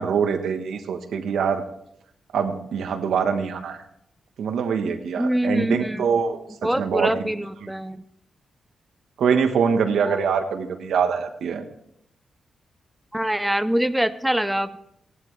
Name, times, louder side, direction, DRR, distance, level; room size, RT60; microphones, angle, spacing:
voice 1, 0.0-1.6 2.3-3.8 4.4-7.2 7.6-7.7 9.2-11.6, right 6 dB, 85° right, 6 dB, 1.2 m, -24 dB
voice 2, 5.2-6.0 6.6-8.0 10.1-10.2 13.1-14.8, right 1 dB, 5° right, 11 dB, 0.6 m, -24 dB
16.0 x 11.5 x 3.3 m, 0.75 s
cardioid pair, 80°, 0 cm